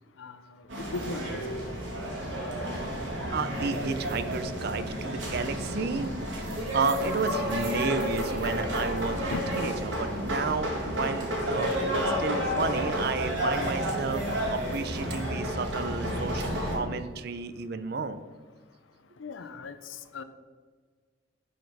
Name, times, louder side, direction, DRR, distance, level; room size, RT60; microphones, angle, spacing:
sound 1, 0.7-16.8, equal, 80° right, 2.3 m, -31 dB
voice 1, 0.8-1.4 9.3-9.6 13.2-13.3 19.2-20.2, left 3 dB, 85° left, 11 dB, 0.6 m, -37 dB
voice 2, 3.3-6.1 6.7-11.7 12.2-18.2, right 4 dB, 55° right, 12 dB, 0.5 m, -32 dB
11.5 x 4.3 x 4.8 m, 1.5 s
head